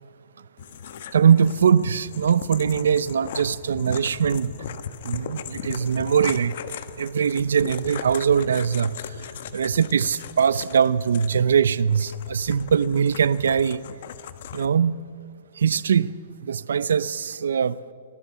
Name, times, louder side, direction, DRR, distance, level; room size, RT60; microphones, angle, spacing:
csound - convtest, 0.6-14.7, left 8 dB, 55° left, 1.3 m, -38 dB
voice 1, 1.1-4.5 5.0-6.5 7.0-9.1 9.5-13.8 14.5-15.0 15.6-16.1 16.4-17.8, right 7 dB, 90° right, 0.7 m, -21 dB
26.0 x 17.5 x 7.0 m
hypercardioid pair, 160°, 0 cm